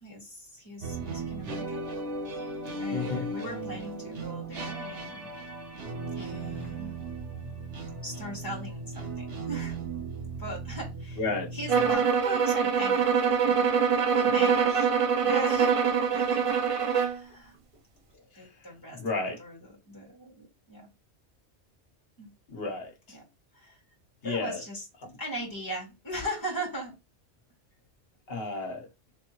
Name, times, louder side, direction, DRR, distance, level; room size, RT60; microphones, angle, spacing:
voice 1, 0.0-1.9 2.8-5.3 6.1-7.5 8.0-9.8 10.4-11.3 11.5-14.9 15.2-17.5 18.4-20.9 22.2-22.3 23.1-23.2 23.5-23.8 24.2-24.9 25.2-27.0, right 1 dB, 15° left, 1.8 m, -39 dB
sound 1, 0.8-11.9, right 3 dB, 80° right, 1.3 m, -37 dB
voice 2, 2.9-3.3 11.2-11.5 19.0-19.4 22.5-22.9 24.2-24.6 28.3-28.9, left 3 dB, 60° left, 1.3 m, -31 dB
sound 2, 11.7-17.2, right 6 dB, 55° right, 0.3 m, -24 dB
4.0 x 3.4 x 3.1 m
omnidirectional pair, 1.2 m